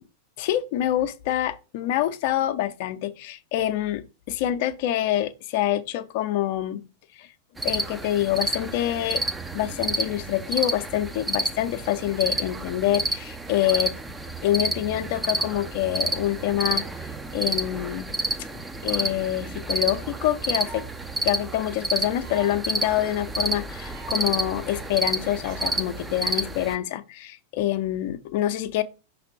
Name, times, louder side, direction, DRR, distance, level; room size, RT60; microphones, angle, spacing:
voice 1, 0.4-6.8 7.2-7.3 7.6-9.2 9.5-14.0 14.4-16.8 17.3-18.1 18.8-20.8 21.2-28.8, left 13 dB, 50° left, 0.7 m, -26 dB
sound 1, 7.6-26.8, right 2 dB, 10° right, 0.6 m, -30 dB
sound 2, 19.9-20.0 20.2-20.9 21.2-21.3 21.6-21.7 22.1-22.6 22.9-23.0 23.3-23.4 23.5-24.2 24.5-24.6 24.8-25.1 25.4-25.8 26.4-26.7, right 5 dB, 45° right, 1.3 m, -44 dB
5.9 x 3.4 x 4.8 m
figure-of-eight pair, 90°, 0 cm